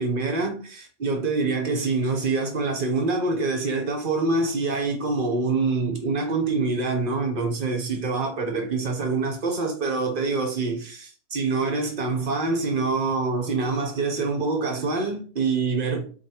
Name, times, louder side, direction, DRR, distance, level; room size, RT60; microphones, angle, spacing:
voice 1, 0.0-16.1, right 3 dB, 50° right, 0.7 m, -25 dB
4.3 x 2.8 x 2.8 m
omnidirectional pair, 1.7 m